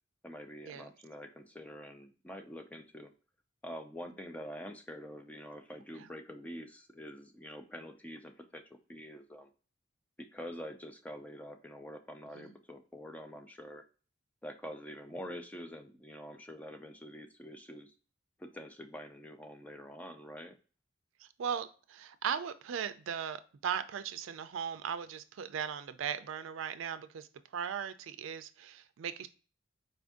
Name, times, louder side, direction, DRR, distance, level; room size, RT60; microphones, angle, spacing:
voice 1, 0.2-3.1 3.6-9.5 10.2-13.8 14.4-17.9 18.4-20.6, equal, 10° left, 5 dB, 0.4 m, -46 dB
voice 2, 21.2-29.3, right 8 dB, 75° right, 11 dB, 0.4 m, -38 dB
4.4 x 2.6 x 3.5 m, 0.37 s
head